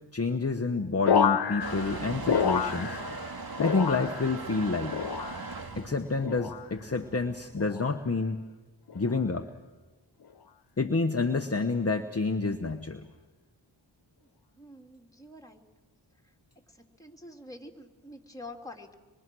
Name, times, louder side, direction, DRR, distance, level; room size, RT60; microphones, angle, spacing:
voice 1, 0.1-3.0 3.6-5.1 5.8-8.4 8.9-9.5 10.8-13.0, left 3 dB, 30° left, 6 dB, 1.2 m, -29 dB
sound 1, 1.1-3.3 3.6-4.4 4.9-5.6 6.2-6.7 7.6-8.0 8.9-9.2, left 7 dB, 55° left, 0.8 m, -29 dB
Motor vehicle (road) / Engine starting / Accelerating revving vroom, 1.6-7.5, right 3 dB, 50° right, 2.1 m, -39 dB
voice 2, 14.5-15.7 16.2-16.3 16.7-19.0, left 2 dB, 5° left, 1 dB, 3.0 m, -47 dB
25.5 x 23.5 x 6.3 m, 1.2 s
cardioid pair, 45°, 46 cm